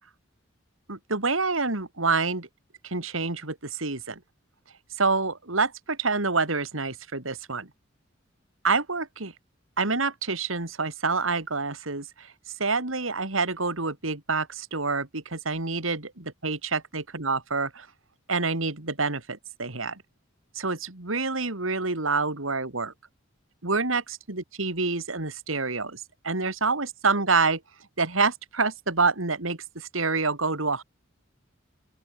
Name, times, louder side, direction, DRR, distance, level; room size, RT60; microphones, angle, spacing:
voice 1, 0.9-2.5 2.8-4.2 5.0-7.7 8.6-9.3 9.8-12.3 12.6-17.9 18.3-20.0 20.5-22.9 23.6-27.6 28.0-30.8, right 4 dB, 85° right, 3.0 m, -27 dB
open air
head